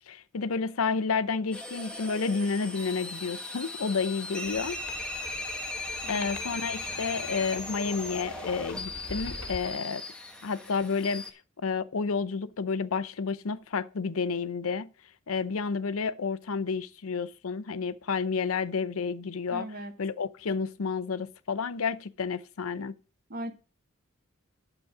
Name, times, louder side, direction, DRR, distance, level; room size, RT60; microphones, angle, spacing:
voice 1, 0.1-4.8 5.0-5.1 5.9-10.0 10.4-11.3 11.6-14.9 15.3-19.7 20.0-22.9, left 5 dB, 75° left, 0.6 m, -30 dB
sound 1, 1.5-11.3, left 2 dB, 5° left, 1.2 m, -38 dB
sound 2, 4.4-9.8, left 3 dB, 55° left, 1.3 m, -44 dB
voice 2, 6.0-6.5 19.5-19.9 23.3-23.5, right 1 dB, 45° right, 1.4 m, -39 dB
9.0 x 7.9 x 4.8 m
head